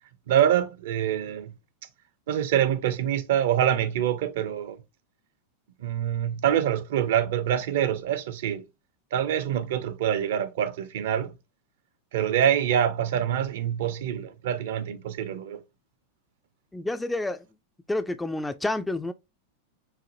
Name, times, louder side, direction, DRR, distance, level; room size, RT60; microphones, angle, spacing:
voice 1, 0.3-1.5 2.3-4.8 5.8-8.6 9.1-11.3 12.1-15.6, right 10 dB, 55° right, 0.5 m, -25 dB
voice 2, 16.7-17.5 17.9-19.1, left 2 dB, 5° left, 0.3 m, -29 dB
5.7 x 2.5 x 2.6 m
figure-of-eight pair, 90°, 0 cm